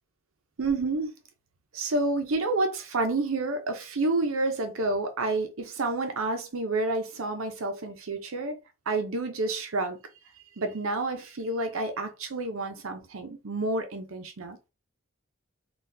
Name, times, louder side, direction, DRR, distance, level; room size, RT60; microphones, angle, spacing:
voice 1, 0.6-1.1 1.7-8.6 8.9-10.0 10.6-14.6, right 2 dB, 75° right, 0.6 m, -29 dB
4.0 x 2.3 x 2.6 m
head